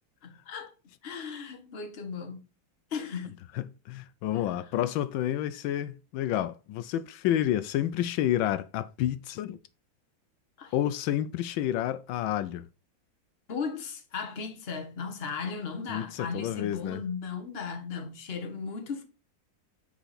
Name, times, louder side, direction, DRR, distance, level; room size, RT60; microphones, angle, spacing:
voice 1, 0.2-0.7 1.0-2.4 2.9-3.4 4.3-4.7 10.6-10.7 13.5-19.0, left 5 dB, 35° left, 1.3 m, -36 dB
voice 2, 3.5-9.6 10.7-12.7 15.9-17.0, left 12 dB, 80° left, 1.3 m, -29 dB
8.9 x 4.8 x 4.2 m
omnidirectional pair, 2.1 m